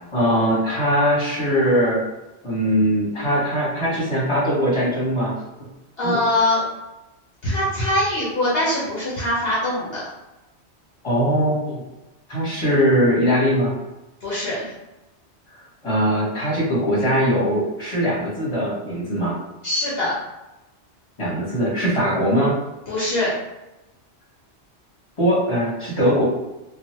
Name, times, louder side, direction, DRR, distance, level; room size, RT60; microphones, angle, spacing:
voice 1, 0.1-2.0 2.4-5.3 6.0-6.2 11.0-11.8 12.3-13.7 15.8-19.4 21.2-22.5 25.2-26.2, equal, 25° left, -6 dB, 1.1 m, -21 dB
voice 2, 6.0-6.6 7.4-10.0 14.2-14.7 19.6-20.1 22.9-23.3, left 1 dB, 60° left, -7 dB, 0.9 m, -22 dB
3.1 x 2.3 x 2.8 m, 1.0 s
omnidirectional pair, 1.2 m